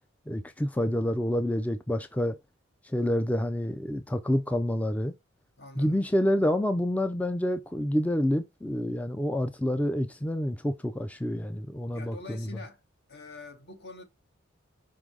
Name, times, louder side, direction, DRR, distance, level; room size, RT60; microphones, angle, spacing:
voice 1, 0.3-2.4 2.8-5.1 5.8-12.5, left 1 dB, 5° left, 0.4 m, -28 dB
voice 2, 5.6-6.0 11.9-12.8 13.1-14.0, left 3 dB, 55° left, 1.8 m, -45 dB
5.2 x 3.8 x 4.8 m
head